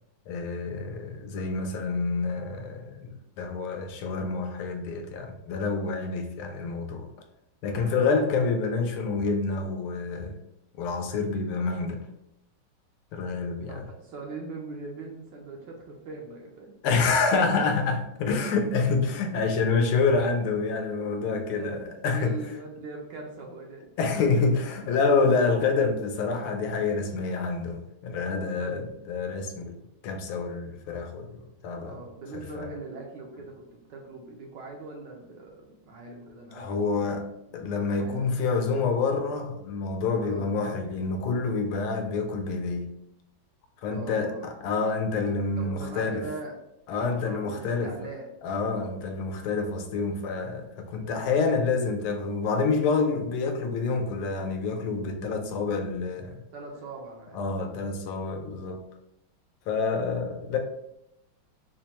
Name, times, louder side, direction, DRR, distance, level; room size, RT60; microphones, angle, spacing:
voice 1, 0.3-7.1 7.6-10.3 10.8-12.0 13.1-13.8 16.8-22.4 24.0-28.8 29.1-29.8 30.0-31.4 31.6-32.0 32.5-32.7 36.5-37.3 37.5-42.9 43.8-46.2 46.9-47.9 48.4-56.4 57.3-58.8 59.7-60.6, left 4 dB, 85° left, 1.5 m, -27 dB
voice 2, 7.7-8.2 13.7-16.7 21.5-23.9 28.4-28.8 31.7-37.2 37.8-38.2 40.2-40.5 43.9-44.5 45.6-46.6 46.9-48.3 48.7-49.0 56.5-57.7, right 3 dB, 75° right, 1.1 m, -41 dB
4.9 x 2.1 x 2.8 m
omnidirectional pair, 2.3 m